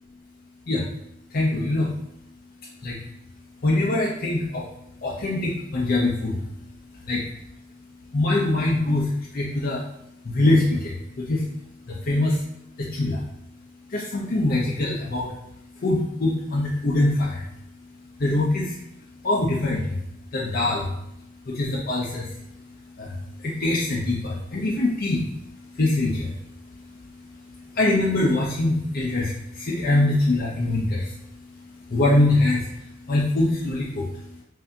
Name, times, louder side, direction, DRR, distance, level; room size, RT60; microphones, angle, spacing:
voice 1, 1.3-1.9 2.8-3.0 3.6-4.7 5.0-6.4 7.1-7.2 8.1-9.8 10.2-11.4 11.9-12.4 12.8-13.2 13.9-15.3 15.8-17.4 18.2-18.8 19.2-20.0 20.3-20.9 21.5-22.3 23.0-25.3 25.7-26.4 27.7-31.1 31.9-32.7 33.1-34.1, left 2 dB, 55° left, -4 dB, 0.6 m, -23 dB
5.6 x 2.7 x 2.7 m, 0.82 s
head